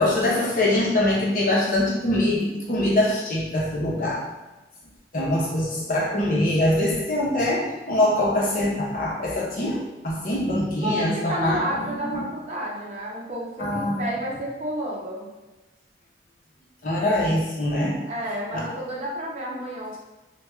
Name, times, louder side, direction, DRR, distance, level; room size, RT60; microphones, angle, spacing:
voice 1, 0.0-4.3 5.1-12.2 13.6-14.0 16.8-18.0 18.5-18.7, left 1 dB, 50° left, -4 dB, 0.8 m, -23 dB
voice 2, 10.8-15.3 18.1-20.0, equal, 35° right, -4 dB, 0.7 m, -31 dB
4.6 x 2.3 x 2.3 m, 1.1 s
head